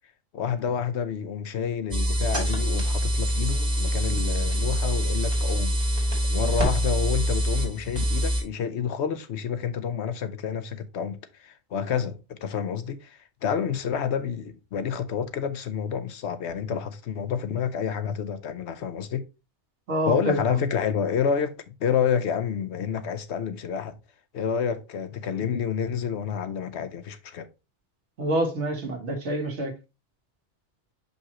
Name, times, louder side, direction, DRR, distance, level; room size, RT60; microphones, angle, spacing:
voice 1, 0.3-5.8 6.3-19.3 20.1-24.0 24.3-27.5, left 7 dB, 75° left, 1.0 m, -29 dB
sound 1, 1.9-8.4, equal, 30° right, 2.6 m, -25 dB
voice 2, 19.9-20.6 28.2-29.7, right 1 dB, 80° right, 1.6 m, -27 dB
6.1 x 5.5 x 2.9 m
omnidirectional pair, 1.1 m